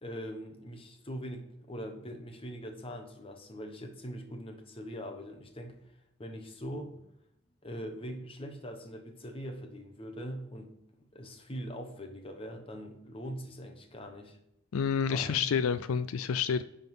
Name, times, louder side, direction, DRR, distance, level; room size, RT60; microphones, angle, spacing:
voice 1, 0.0-5.8 6.2-7.1 7.6-10.7 11.1-14.4 15.0-15.4, equal, 25° left, 4 dB, 1.1 m, -42 dB
voice 2, 14.7-16.6, left 6 dB, 80° left, 12 dB, 0.4 m, -29 dB
10.5 x 3.9 x 6.1 m, 0.81 s
head